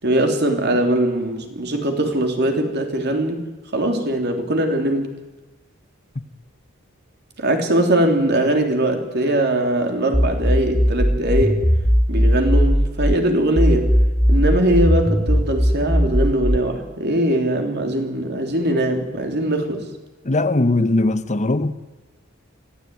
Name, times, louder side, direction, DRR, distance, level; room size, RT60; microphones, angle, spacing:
voice 1, 0.0-3.4 3.7-5.1 7.4-11.6 12.1-13.9 14.3-19.8, right 1 dB, 55° right, 3.4 m, -21 dB
sound 1, 10.1-13.2 13.6-16.6, equal, 5° left, 0.7 m, -18 dB
voice 2, 20.2-21.7, left 2 dB, 35° left, 0.9 m, -19 dB
24.5 x 15.5 x 9.5 m
head